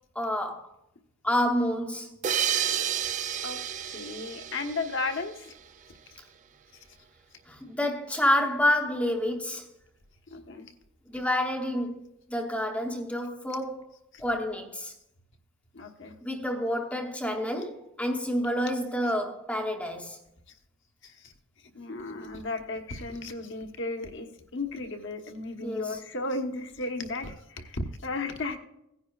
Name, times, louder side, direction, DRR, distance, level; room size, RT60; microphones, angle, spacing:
voice 1, 0.1-0.7 1.2-2.2 7.5-9.7 11.1-12.0 12.3-13.8 14.2-14.9 16.2-20.2 25.6-26.0, left 1 dB, 5° left, 0.9 m, -28 dB
sound 1, 2.2-5.6, right 9 dB, 35° right, 0.3 m, -31 dB
voice 2, 3.9-5.5 10.3-10.7 14.1-14.2 15.7-16.1 21.0-21.3 21.7-24.3 24.5-28.6, left 2 dB, 55° left, 1.2 m, -34 dB
17.0 x 9.9 x 2.4 m
head